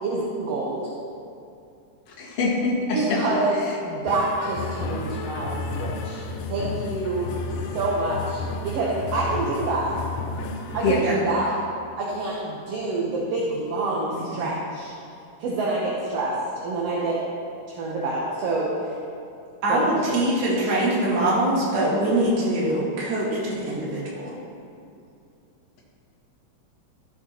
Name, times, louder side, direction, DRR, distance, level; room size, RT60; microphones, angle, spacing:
voice 1, 0.0-0.9 2.9-6.2 6.5-7.3 7.7-9.9 10.7-11.6 12.0-14.9 15.4-17.2 17.7-18.7 19.7-20.3, right 2 dB, 60° right, -5 dB, 1.8 m, -27 dB
voice 2, 2.2-2.8 10.8-11.0, left 2 dB, 45° left, -7 dB, 2.7 m, -23 dB
sound 1, 4.1-11.0, left 4 dB, 80° left, 2.3 m, -32 dB
voice 3, 14.1-14.5 19.6-24.0, right 1 dB, 35° right, -6 dB, 2.1 m, -23 dB
15.0 x 7.7 x 3.0 m, 2.6 s
omnidirectional pair, 3.9 m